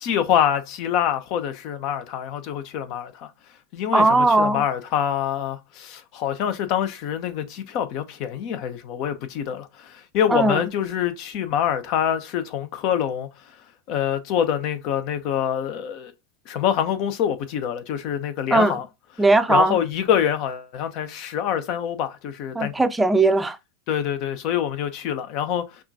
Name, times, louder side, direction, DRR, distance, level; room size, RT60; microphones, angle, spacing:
voice 1, 0.0-3.3 3.7-13.3 13.9-16.1 16.5-18.9 19.5-22.7 23.9-25.7, left 9 dB, 55° left, 0.8 m, -25 dB
voice 2, 3.9-4.6 10.3-10.6 18.5-18.8 19.2-19.8 22.5-23.6, right 2 dB, 10° right, 0.5 m, -18 dB
5.7 x 2.5 x 2.7 m
hypercardioid pair, 90°, 0 cm